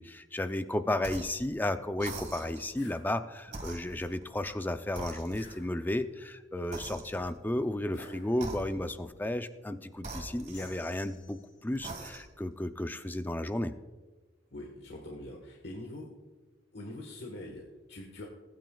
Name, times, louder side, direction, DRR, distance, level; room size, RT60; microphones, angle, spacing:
voice 1, 0.0-13.7, left 1 dB, 10° left, 10 dB, 0.4 m, -33 dB
sound 1, 1.0-1.4 2.0-2.7 3.5-4.6 5.0-5.7 6.7-7.5 8.3-9.1 10.0-11.1 11.7-12.4, right 2 dB, 40° right, 1.7 m, -43 dB
sound 2, 2.7-3.1 5.3-6.1 7.9-8.7 10.5-11.6, left 2 dB, 85° left, 2.8 m, -51 dB
voice 2, 14.5-16.1 16.7-18.3, left 1 dB, 60° left, 1 dB, 1.3 m, -43 dB
20.0 x 9.2 x 2.3 m, 1.3 s
head